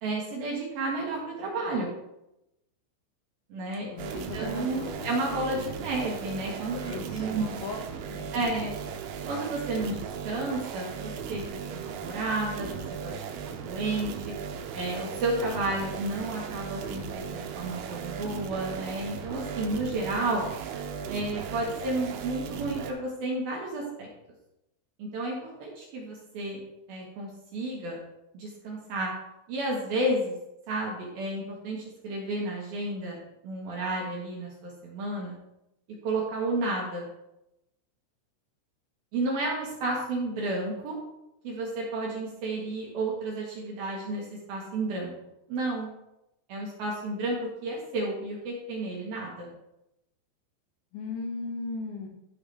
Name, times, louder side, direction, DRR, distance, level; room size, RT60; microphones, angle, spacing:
voice 1, 0.0-1.9 3.5-3.9 4.3-7.4 8.3-8.7 9.3-11.4 11.7-13.1 13.5-14.3 14.7-20.4 21.1-24.1 25.0-26.6 26.9-28.0 28.3-29.1 29.5-30.3 30.7-33.2 33.4-35.3 36.0-37.1 39.1-41.0 41.4-45.1 45.5-45.9 46.5-49.5, right 2 dB, 65° right, -3 dB, 2.6 m, -31 dB
voice 2, 3.9-5.1 5.4-5.5 6.8-7.8 8.1-8.5 50.9-52.1, left 4 dB, 85° left, 1 dB, 4.2 m, -37 dB
sound 1, 4.0-22.9, right 7 dB, 90° right, 3.3 m, -37 dB
13.0 x 5.9 x 3.4 m, 0.88 s
omnidirectional pair, 5.7 m